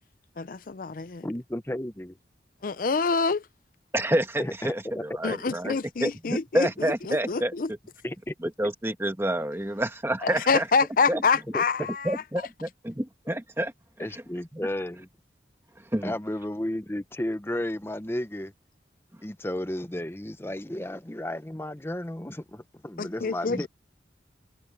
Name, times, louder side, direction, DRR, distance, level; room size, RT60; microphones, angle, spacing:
voice 1, 0.4-1.3 2.6-3.4 5.2-7.7 10.2-12.2 23.0-23.7, left 4 dB, 50° left, 0.5 m, -27 dB
voice 2, 1.2-2.2 4.4-5.4 8.0-8.3 11.1-11.2 11.5-11.6 14.0-15.1 16.0-18.5 19.2-23.7, left 1 dB, 15° left, 0.8 m, -33 dB
voice 3, 3.9-7.8 8.4-10.7 11.1-11.2 12.0-13.7 15.9-16.1 23.5-23.6, right 1 dB, 15° right, 1.3 m, -28 dB
head